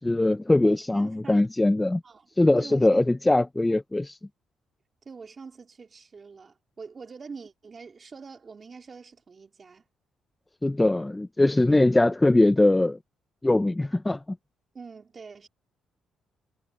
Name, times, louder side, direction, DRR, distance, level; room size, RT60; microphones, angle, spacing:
voice 1, 0.0-2.0 2.4-4.2 10.6-13.0 13.4-14.2, left 2 dB, 15° left, 0.5 m, -21 dB
voice 2, 0.6-1.4 2.0-2.3 2.6-3.1 5.0-9.9 11.7-11.8 14.7-15.5, right 5 dB, 35° right, 3.0 m, -44 dB
cardioid pair, 90°, 0 cm